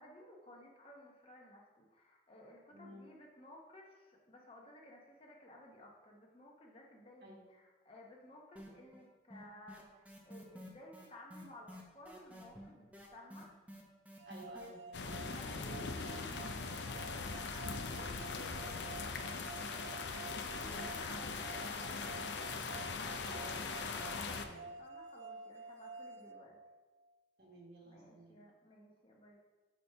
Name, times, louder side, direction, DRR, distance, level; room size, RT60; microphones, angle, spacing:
voice 1, 0.0-13.5 15.3-16.1 16.5-22.4 23.9-26.6 27.8-29.4, left 1 dB, 30° left, -1 dB, 0.9 m, -57 dB
voice 2, 2.7-3.1 7.2-7.4 14.2-16.0 23.2-23.9 24.4-24.6 27.4-28.3, right 1 dB, 60° right, -3 dB, 1.7 m, -55 dB
sound 1, 8.6-9.1 9.3-16.4, equal, 10° right, 0.7 m, -52 dB
sound 2, 14.2-27.1, right 2 dB, 80° right, 0.4 m, -50 dB
sound 3, 14.9-24.5, left 4 dB, 75° left, 0.5 m, -41 dB
5.1 x 4.2 x 5.5 m, 1.2 s
head